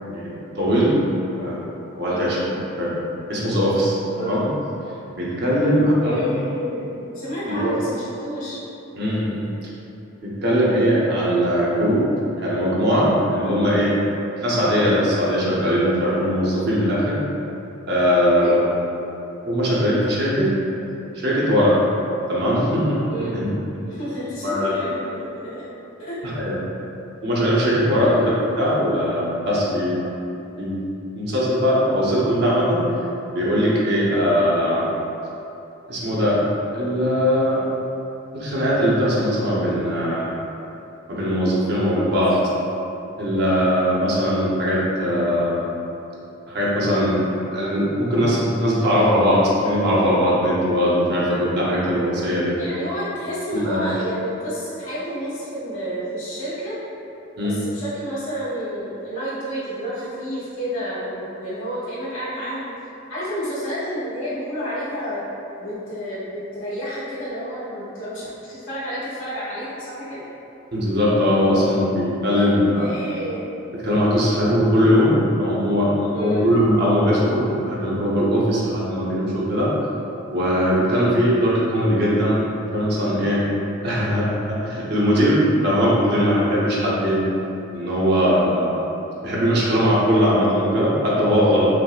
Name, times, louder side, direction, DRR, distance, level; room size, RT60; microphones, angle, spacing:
voice 1, 0.1-1.0 1.4-1.6 1.9-2.4 2.8-2.9 3.3-4.5 5.1-6.3 7.5-7.8 9.0-9.5 10.2-12.0 12.4-13.9 14.4-17.2 17.9-18.6 19.4-20.5 21.1-21.8 22.3-23.5 24.4-24.8 26.2-26.6 27.2-30.0 30.6-30.8 31.1-32.8 33.3-34.9 35.9-36.4 36.7-37.6 38.3-40.3 41.1-42.3 43.2-45.6 46.5-47.2 47.5-52.5 53.5-53.8 57.4-57.5 70.7-73.0 73.7-79.7 80.3-83.4 83.8-87.2 87.7-88.8 89.2-91.7, equal, 50° right, -7 dB, 0.7 m, -20 dB
voice 2, 6.0-8.6 18.3-18.5 23.1-23.4 23.9-25.2 25.4-25.6 26.0-26.1 27.9-28.2 42.3-42.4 52.6-56.8 57.4-62.7 63.1-65.2 65.6-70.2 72.3-72.5 72.7-73.4 76.1-76.5, equal, 75° left, -10 dB, 1.4 m, -30 dB
5.8 x 2.0 x 2.4 m, 2.9 s
head